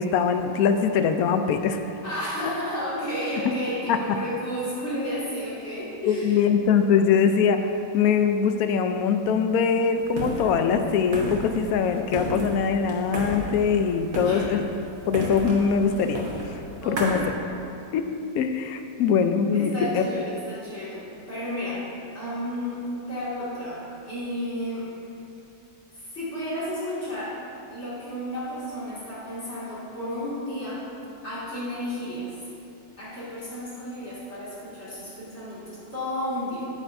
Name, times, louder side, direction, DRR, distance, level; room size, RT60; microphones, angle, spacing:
voice 1, 0.0-1.8 3.9-4.0 6.1-16.2 16.8-17.2 17.9-18.0 18.3-20.1, left 6 dB, 70° left, 7 dB, 0.9 m, -22 dB
voice 2, 2.0-6.4 14.2-14.5 16.8-17.2 19.5-21.8 22.1-24.9 25.9-27.4 27.7-30.8 31.2-32.3 33.0-36.7, equal, 40° left, -10 dB, 2.5 m, -32 dB
sound 1, 10.0-17.3, right 1 dB, 65° right, 1.7 m, -34 dB
9.7 x 8.8 x 2.6 m, 2.7 s
omnidirectional pair, 1.8 m